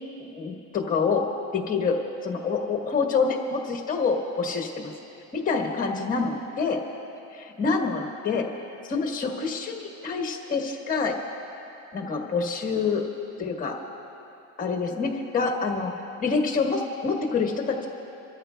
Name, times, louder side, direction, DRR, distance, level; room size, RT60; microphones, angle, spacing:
voice 1, 0.3-1.2 1.5-4.9 5.3-6.8 7.6-8.5 8.8-11.2 11.9-13.0 13.4-13.7 14.6-15.9 16.2-17.9, left 4 dB, 25° left, 1 dB, 1.3 m, -26 dB
28.5 x 13.5 x 2.3 m, 2.9 s
cardioid pair, 165°, 34 cm